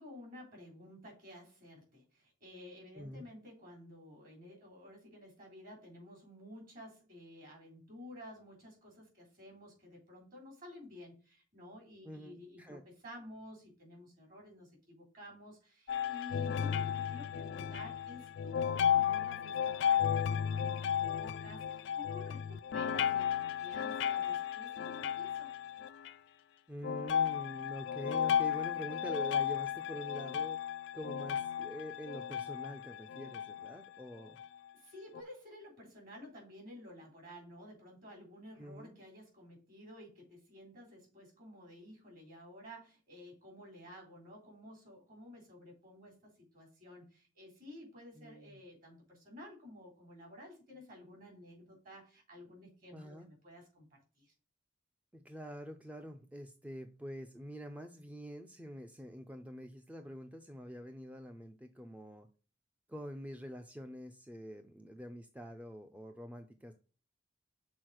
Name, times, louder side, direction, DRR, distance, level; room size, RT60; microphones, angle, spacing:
voice 1, 0.0-25.5 34.7-54.3, left 1 dB, 50° right, 0 dB, 3.4 m, -52 dB
voice 2, 3.0-3.3 12.0-12.8 26.7-30.6 30.9-34.4 38.6-39.0 48.2-48.6 52.9-53.3 55.1-62.3 62.9-66.7, equal, 10° right, 6 dB, 0.5 m, -46 dB
sound 1, 15.9-26.1 26.8-33.8 34.4-34.5 35.1-35.2, left 8 dB, 70° left, 0.3 m, -34 dB
6.3 x 4.1 x 4.6 m, 0.37 s
head